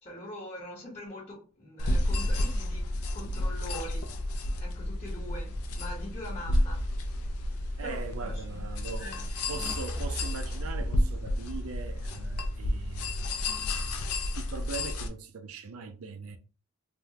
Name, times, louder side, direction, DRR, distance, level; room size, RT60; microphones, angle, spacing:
voice 1, 0.0-2.9 3.1-4.1 4.5-7.2 7.8-8.7 9.0-9.2, left 1 dB, 30° left, 1.1 m, -43 dB
sound 1, 1.8-15.1, left 1 dB, 90° left, 0.5 m, -31 dB
sound 2, 7.5-13.1, equal, 15° right, 0.6 m, -43 dB
voice 2, 7.8-9.1 9.5-14.1 14.3-16.4, right 5 dB, 70° right, 0.5 m, -41 dB
3.6 x 2.2 x 2.8 m
head